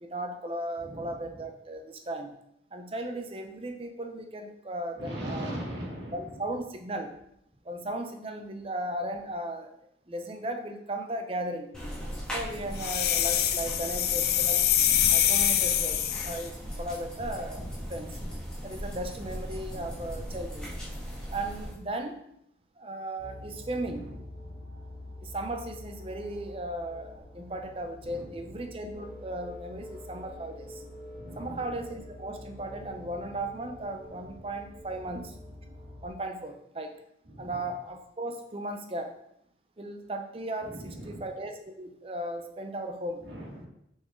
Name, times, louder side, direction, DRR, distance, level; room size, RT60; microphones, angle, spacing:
voice 1, 0.0-2.3 2.7-5.5 6.1-7.1 7.6-9.7 10.1-11.7 12.3-14.7 15.1-16.5 16.8-17.6 17.9-18.2 18.6-20.7 21.3-22.2 22.8-24.1 25.2-30.8 31.4-35.3 36.0-37.0 37.4-39.1 39.8-43.2, right 1 dB, 30° right, 5 dB, 0.7 m, -36 dB
voice 2, 0.8-1.3 4.9-6.4 12.5-12.7 19.5-20.2 23.8-24.2 24.4-24.6 28.0-28.6 31.1-31.8 34.2-34.4 37.2-37.7 40.6-41.2 43.2-43.7, equal, 80° right, -6 dB, 2.7 m, -41 dB
sound 1, 11.7-21.8, equal, 5° left, 1.9 m, -38 dB
sound 2, 12.8-16.5, left 10 dB, 60° left, 0.5 m, -25 dB
sound 3, 23.2-36.1, left 1 dB, 60° right, 2.8 m, -46 dB
6.1 x 5.6 x 3.7 m, 0.76 s
head